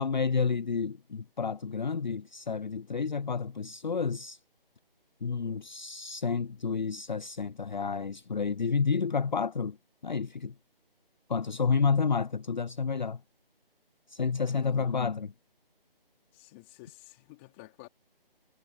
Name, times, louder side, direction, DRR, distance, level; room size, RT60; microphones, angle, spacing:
voice 1, 0.0-4.4 5.2-9.8 10.0-10.5 11.3-13.2 14.1-15.3, left 5 dB, 50° left, 0.5 m, -30 dB
voice 2, 14.4-14.9 16.3-17.9, left 25 dB, 10° left, 3.6 m, -51 dB
figure-of-eight pair, 165°, 29 cm